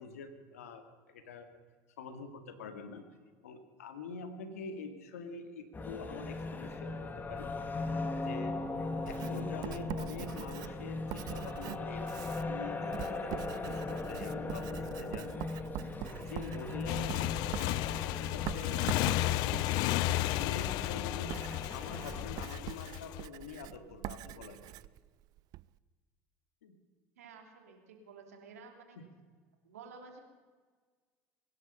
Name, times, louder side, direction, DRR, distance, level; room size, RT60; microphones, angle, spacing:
voice 1, 0.0-1.5 2.0-3.0 3.4-7.5 8.2-8.6 9.1-15.3 16.2-19.8 20.4-21.4 21.7-24.7 26.6-26.7, left 4 dB, 85° left, 7 dB, 2.0 m, -45 dB
sound 1, 5.7-22.5, left 3 dB, 25° left, 1.9 m, -39 dB
Writing, 9.1-25.7, right 16 dB, 55° right, 0.4 m, -44 dB
Motorcycle, 16.9-23.2, left 20 dB, 60° left, 0.4 m, -33 dB
voice 2, 27.2-29.0 29.6-30.2, right 5 dB, 85° right, 4 dB, 2.7 m, -52 dB
23.5 x 11.0 x 5.6 m, 1.5 s
hypercardioid pair, 80°, 8 cm